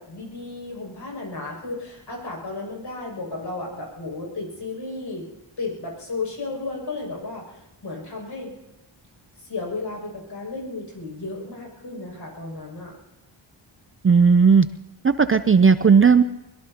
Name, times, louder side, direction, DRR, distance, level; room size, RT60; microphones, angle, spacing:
voice 1, 0.0-5.3 5.6-8.5 9.4-12.9, left 3 dB, 60° left, -2 dB, 6.3 m, -33 dB
voice 2, 14.0-14.7 15.0-16.2, right 5 dB, 30° right, 11 dB, 0.5 m, -15 dB
22.5 x 22.5 x 2.9 m, 0.91 s
wide cardioid pair, 105°, 46 cm